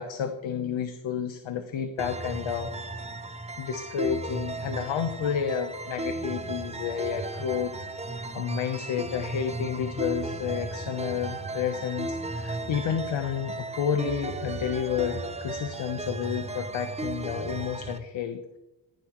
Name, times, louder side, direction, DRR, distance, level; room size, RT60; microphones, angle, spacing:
voice 1, 0.0-2.7 3.6-7.7 8.3-18.6, left 8 dB, 80° left, 7 dB, 1.0 m, -30 dB
sound 1, 2.0-18.0, right 2 dB, 15° right, 0.8 m, -35 dB
16.0 x 11.0 x 3.1 m, 0.97 s
cardioid pair, 105°, 45 cm